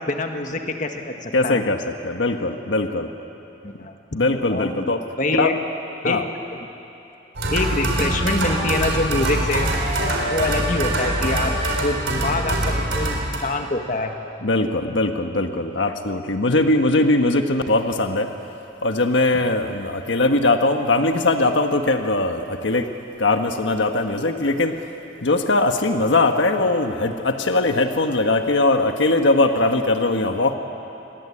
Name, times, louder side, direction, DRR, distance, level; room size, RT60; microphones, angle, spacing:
voice 1, 0.0-1.6 3.6-3.9 4.5-4.7 5.2-5.6 6.0-6.2 6.5-6.6 7.5-9.7 10.3-11.5 11.8-14.1, left 2 dB, 45° left, 4 dB, 1.7 m, -25 dB
voice 2, 1.3-3.1 4.1-5.0 5.4-5.5 6.0-6.2 10.0-10.4 14.4-18.3 18.8-22.9 23.2-24.9 25.2-30.6, left 2 dB, 90° left, 5 dB, 1.4 m, -20 dB
sound 1, 7.3-13.4, right 1 dB, 85° right, 4.0 m, -23 dB
28.0 x 21.0 x 8.6 m, 2.9 s
head